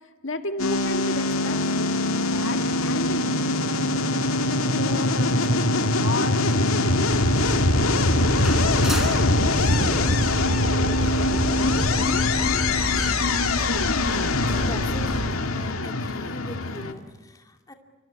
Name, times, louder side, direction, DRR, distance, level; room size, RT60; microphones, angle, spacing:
voice 1, 0.2-3.4 4.6-7.3, left 2 dB, 65° left, 6 dB, 1.9 m, -33 dB
sound 1, 0.6-16.9, left 2 dB, 85° left, 2.1 m, -23 dB
sound 2, 7.1-15.3, equal, ahead, 4.1 m, -31 dB
voice 2, 14.5-17.7, left 1 dB, 15° left, 4 dB, 2.5 m, -42 dB
28.5 x 24.0 x 8.8 m, 1.2 s
head